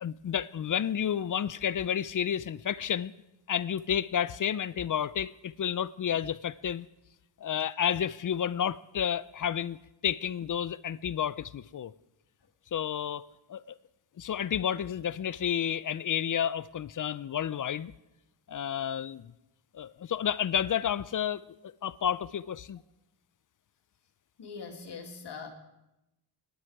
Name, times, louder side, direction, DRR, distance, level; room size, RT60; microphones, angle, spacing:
voice 1, 0.0-3.1 3.5-6.9 7.4-9.8 10.0-11.9 12.7-13.2 13.5-13.7 14.2-17.9 18.5-19.3 19.7-21.4 21.8-22.8, left 9 dB, 45° left, 0.5 m, -31 dB
voice 2, 24.4-25.5, left 5 dB, 70° left, 2.5 m, -42 dB
25.0 x 10.5 x 4.8 m
cardioid pair, 85°, 43 cm